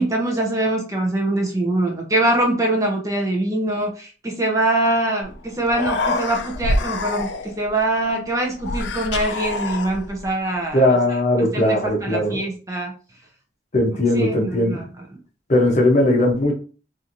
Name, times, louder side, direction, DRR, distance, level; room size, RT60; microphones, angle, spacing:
voice 1, 0.0-10.8 11.4-12.9 13.9-14.9, right 1 dB, 20° right, 0 dB, 0.6 m, -23 dB
Human voice, 5.2-5.3 5.6-7.7 8.6-10.3, left 2 dB, 65° left, 0.3 m, -26 dB
voice 2, 10.7-12.4 13.7-14.7 15.5-16.5, left 1 dB, 40° left, 1 dB, 0.7 m, -18 dB
3.0 x 2.5 x 2.5 m, 0.37 s
head